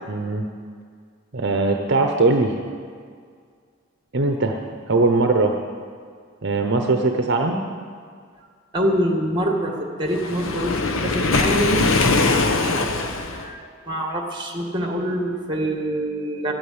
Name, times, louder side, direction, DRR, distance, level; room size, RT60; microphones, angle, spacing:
voice 1, 0.1-0.5 1.3-2.5 4.1-5.5 6.4-7.6, right 3 dB, 55° right, 4 dB, 0.9 m, -20 dB
voice 2, 8.7-11.9 12.6-16.5, equal, 25° right, 2 dB, 2.1 m, -25 dB
Waves surf, 10.1-13.5, left 3 dB, 80° left, 1.1 m, -21 dB
13.0 x 9.0 x 9.7 m, 2.1 s
head